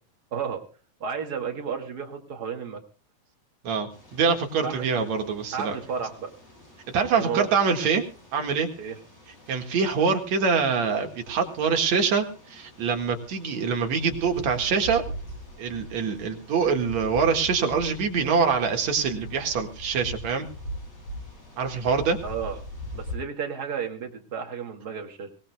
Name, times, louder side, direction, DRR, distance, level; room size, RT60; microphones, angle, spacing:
voice 1, 0.3-0.6 1.0-2.8 4.6-4.9 5.5-6.3 7.1-7.5 8.8-9.0 22.2-22.6 22.9-25.3, right 6 dB, 35° right, 2 dB, 2.1 m, -32 dB
voice 2, 3.6-5.7 6.9-8.0 8.3-8.7 9.5-15.0 15.6-20.5 21.6-22.2, right 5 dB, 55° right, 4 dB, 2.8 m, -24 dB
sound 1, 3.9-23.2, equal, 45° left, 9.3 m, -42 dB
24.0 x 17.5 x 2.2 m, 0.36 s
omnidirectional pair, 3.9 m